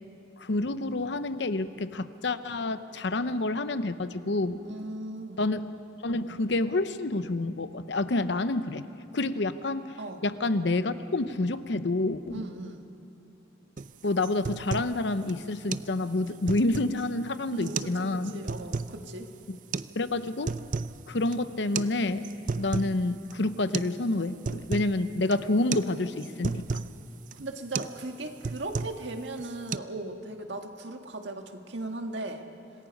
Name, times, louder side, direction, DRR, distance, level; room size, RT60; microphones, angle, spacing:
voice 1, 0.4-4.6 5.4-5.7 6.0-8.9 9.1-9.8 10.2-12.5 14.0-18.4 19.5-19.6 20.0-20.5 21.1-22.3 22.6-26.8, left 2 dB, 75° left, 12 dB, 0.8 m, -28 dB
voice 2, 4.6-5.4 10.0-10.2 12.3-12.9 17.5-19.3 27.3-32.4, right 2 dB, 80° right, 4 dB, 1.7 m, -38 dB
sound 1, 13.8-13.9 14.2-15.0 15.3-15.4 15.7-15.9 16.3-17.0 17.6-18.0 18.3-18.9 19.7-19.9 20.3-21.0 21.3-21.4 21.8-21.9 22.2-23.0 23.3-23.4 23.7-24.0 24.2-24.9 25.3-25.5 25.7-25.9 26.2-26.9 27.3-27.5 27.7-28.0 28.3-29.1 29.4-29.8, right 4 dB, 45° right, 0.4 m, -33 dB
26.5 x 19.5 x 5.3 m, 3.0 s
head